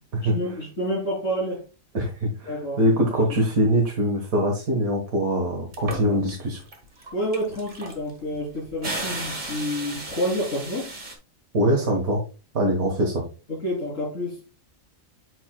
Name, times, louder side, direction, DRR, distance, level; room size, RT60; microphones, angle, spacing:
voice 1, 0.2-1.6 2.5-2.9 7.1-10.9 13.5-14.4, equal, 65° left, 3.6 m, -29 dB
voice 2, 1.9-2.5 2.8-6.6 11.5-12.2 12.5-13.2, equal, 85° right, 1.8 m, -23 dB
sound 1, 5.7-6.3 6.7-11.1, right 2 dB, 35° right, 1.5 m, -34 dB
8.0 x 6.9 x 2.2 m
omnidirectional pair, 1.4 m